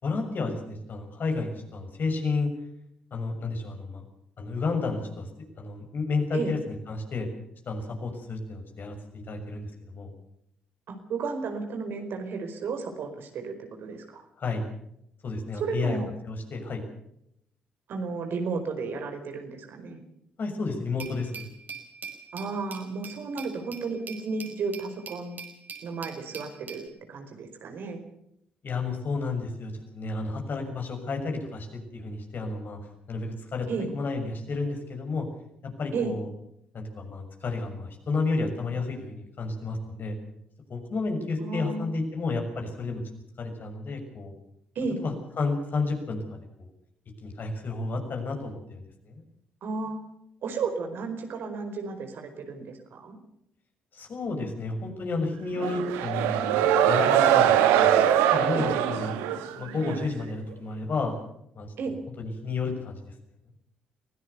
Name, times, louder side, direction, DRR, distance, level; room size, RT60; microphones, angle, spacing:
voice 1, 0.0-2.5 3.1-4.0 4.4-5.2 5.6-7.3 7.7-10.1 14.4-14.6 15.2-16.0 16.3-16.8 20.4-21.5 28.6-31.7 31.9-32.8 33.1-35.3 35.6-36.3 36.7-40.2 40.7-43.0 43.4-44.3 45.0-46.7 47.2-49.2 53.9-56.6 56.9-57.9 58.3-61.2 61.5-61.9 62.2-63.0, left 3 dB, 55° left, 4 dB, 6.5 m, -31 dB
voice 2, 11.1-13.5 13.8-14.2 15.6-16.1 17.9-20.0 22.3-25.4 25.8-28.0 33.7-33.9 35.9-36.1 41.4-41.9 44.7-45.0 49.6-50.0 50.4-53.2 61.8-62.0, right 4 dB, 65° right, 5 dB, 4.7 m, -33 dB
Glass, 21.0-26.9, right 5 dB, 50° right, 5.2 m, -43 dB
sound 1, 55.6-60.1, right 10 dB, 85° right, 1.5 m, -22 dB
24.0 x 17.0 x 6.9 m, 0.75 s
hypercardioid pair, 50°, 4 cm